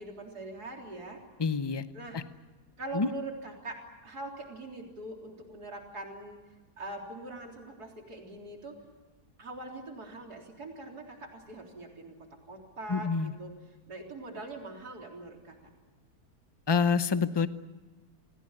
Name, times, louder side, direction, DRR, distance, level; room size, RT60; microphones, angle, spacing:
voice 1, 0.0-1.2 1.9-2.2 2.8-6.4 6.8-8.8 9.4-12.2 12.5-13.5 13.9-15.6, right 2 dB, 75° right, 1 dB, 4.2 m, -42 dB
voice 2, 1.4-1.8 2.1-2.2 2.9-3.1 12.9-13.3 16.7-17.5, left 5 dB, 25° left, 12 dB, 0.6 m, -27 dB
27.5 x 18.0 x 9.8 m, 1.3 s
omnidirectional pair, 1.7 m